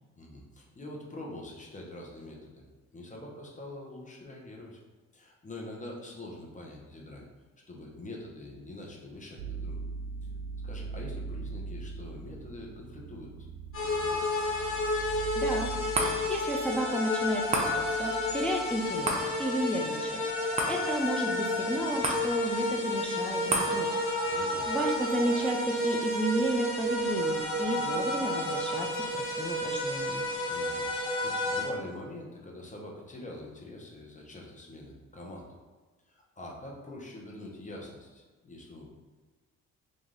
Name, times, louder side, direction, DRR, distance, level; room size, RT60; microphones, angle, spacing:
voice 1, 0.2-2.7 2.9-4.8 5.1-7.2 7.7-9.8 10.6-13.3 13.8-14.2 24.3-24.7 30.5-35.5 36.1-38.9, left 1 dB, 25° left, -1 dB, 0.9 m, -44 dB
sound 1, 9.4-19.0, right 4 dB, 70° right, 0.5 m, -41 dB
sound 2, 13.7-31.7, left 1 dB, 45° left, 1.3 m, -31 dB
voice 2, 15.4-15.7 16.2-23.9 24.3-30.3, equal, 5° left, 1 dB, 0.3 m, -33 dB
sound 3, 15.9-28.5 29.0-29.1, right 1 dB, 20° right, 0.7 m, -37 dB
3.2 x 2.6 x 3.8 m, 1.3 s
cardioid pair, 90°, 30 cm